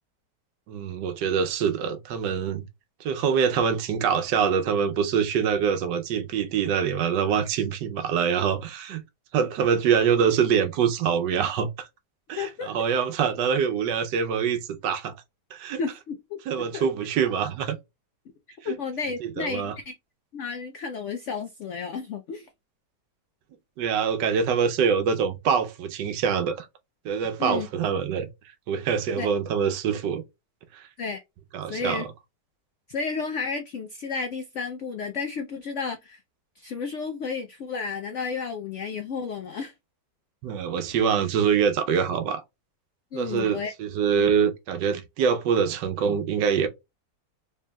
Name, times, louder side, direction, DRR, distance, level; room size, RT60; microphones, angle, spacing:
voice 1, 0.7-2.6 3.0-9.0 9.3-11.9 12.3-15.1 15.5-15.8 16.5-17.8 18.6-18.8 19.4-19.7 23.8-26.7 27.0-28.3 28.7-30.2 30.7-30.9 31.5-32.1 40.4-42.4 43.1-46.7, right 7 dB, 80° right, 1.3 m, -25 dB
voice 2, 12.4-12.7 15.8-16.4 16.7-16.9 18.6-19.9 20.3-22.5 27.4-27.7 29.2-29.3 31.0-31.2 31.7-32.1 32.9-36.2 36.6-39.7 43.1-43.7, left 5 dB, 80° left, 0.6 m, -32 dB
4.3 x 3.4 x 2.2 m
omnidirectional pair, 1.8 m